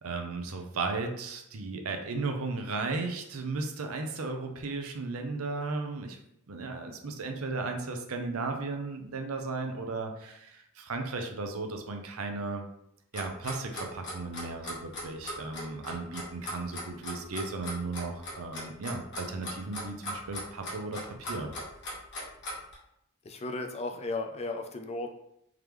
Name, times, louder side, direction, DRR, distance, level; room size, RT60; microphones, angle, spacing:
voice 1, 0.0-6.2 6.5-12.6 13.1-21.5, right 3 dB, 90° right, 4 dB, 0.6 m, -35 dB
Clock, 13.1-22.7, left 1 dB, 55° left, 1.3 m, -38 dB
voice 2, 23.2-25.1, left 2 dB, 30° left, 6 dB, 0.4 m, -35 dB
3.6 x 3.3 x 3.1 m, 0.78 s
head